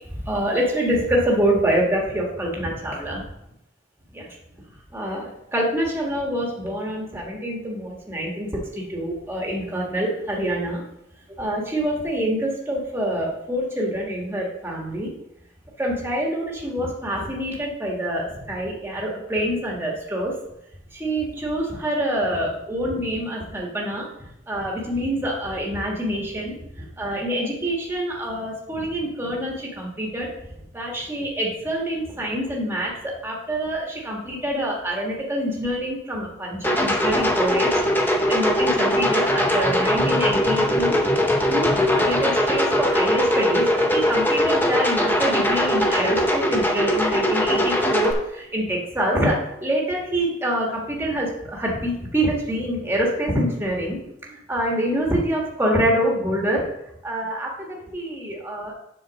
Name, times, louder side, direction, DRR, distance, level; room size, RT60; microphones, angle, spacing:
voice 1, 0.2-3.3 4.1-4.3 4.9-8.5 8.7-10.8 11.4-15.1 15.8-20.3 20.9-30.3 30.7-41.0 41.5-56.6 57.0-58.8, right 1 dB, 10° right, -2 dB, 1.3 m, -26 dB
sound 1, 36.6-48.1, equal, 10° left, 0.7 m, -21 dB
7.7 x 4.0 x 6.2 m, 0.83 s
head